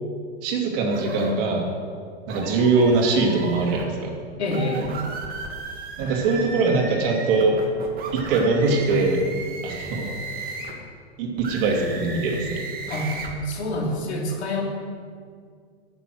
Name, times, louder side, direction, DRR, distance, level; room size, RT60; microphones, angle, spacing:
voice 1, 0.4-1.7 2.3-4.1 6.0-7.5 8.1-9.2 9.6-10.1 11.2-12.6, right 3 dB, 55° right, 0 dB, 2.7 m, -22 dB
sound 1, 0.9-1.3 2.3-3.9 4.4-10.8 11.4-13.3, right 3 dB, 30° right, 1.9 m, -35 dB
voice 2, 4.4-4.9 12.9-13.1 13.4-14.6, left 1 dB, 85° left, 0 dB, 2.5 m, -26 dB
11.0 x 7.1 x 7.9 m, 2.1 s
hypercardioid pair, 125°, 32 cm